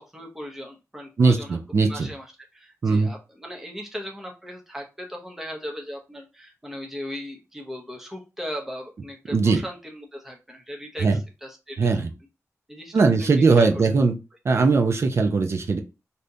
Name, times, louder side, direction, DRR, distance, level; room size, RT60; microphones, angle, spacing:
voice 1, 0.0-12.0 12.7-13.7, equal, 5° right, 0 dB, 0.7 m, -38 dB
voice 2, 1.2-2.1 2.8-3.1 9.3-9.6 11.0-11.2 11.8-12.1 12.9-14.1 14.4-15.8, right 4 dB, 55° right, 5 dB, 0.6 m, -20 dB
3.4 x 2.7 x 2.7 m, 0.28 s
wide cardioid pair, 155°, 6 cm